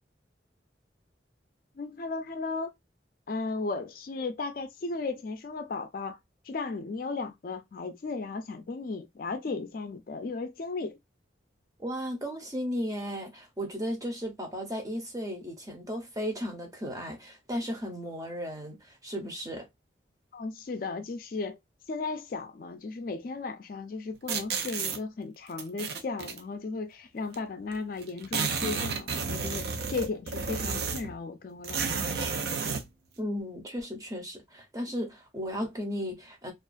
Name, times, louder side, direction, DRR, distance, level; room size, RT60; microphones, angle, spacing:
voice 1, 1.8-2.7 3.3-6.2 6.4-11.0 20.3-21.6 21.9-32.2, left 3 dB, 50° left, 0.4 m, -35 dB
voice 2, 11.8-19.7 33.2-36.5, equal, 20° right, 0.6 m, -35 dB
sound 1, 24.3-25.0 25.6-26.4 27.3-27.4 27.7-27.8 28.0-31.2 31.6-32.9, right 5 dB, 60° right, 0.5 m, -32 dB
2.4 x 2.3 x 2.4 m
head